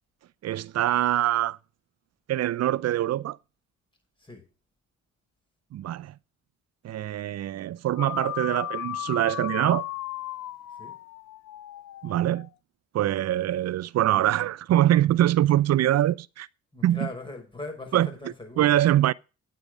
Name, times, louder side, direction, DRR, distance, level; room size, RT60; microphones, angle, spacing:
voice 1, 0.4-1.6 2.3-3.4 5.7-6.1 6.8-9.8 12.0-12.5 12.9-16.5 16.8-17.1 17.9-18.1 18.6-19.1, right 13 dB, 60° right, 0.6 m, -23 dB
sound 1, 7.9-12.5, left 14 dB, 65° left, 0.6 m, -36 dB
voice 2, 16.7-18.7, left 2 dB, 15° left, 5.5 m, -40 dB
9.6 x 8.7 x 5.0 m
cardioid pair, 90°, 30 cm